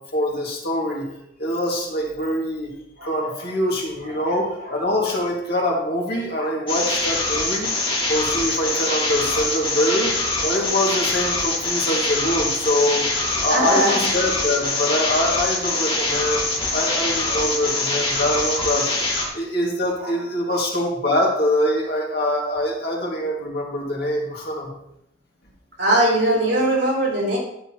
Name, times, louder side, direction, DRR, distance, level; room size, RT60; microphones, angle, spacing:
voice 1, 0.1-1.1 1.4-2.7 3.0-7.7 8.1-10.1 10.4-13.1 13.4-18.9 19.3-24.7, left 1 dB, 55° left, -1 dB, 2.2 m, -24 dB
voice 2, 3.0-3.3 4.0-4.1 6.4-6.5 9.3-9.4 13.5-14.1 17.0-17.6 18.6-18.7 19.2-19.3 20.0-20.1 25.8-27.4, right 1 dB, 65° right, -4 dB, 3.4 m, -22 dB
sound 1, 6.7-19.3, left 2 dB, 30° left, 2.0 m, -24 dB
12.0 x 6.8 x 3.0 m, 0.78 s
head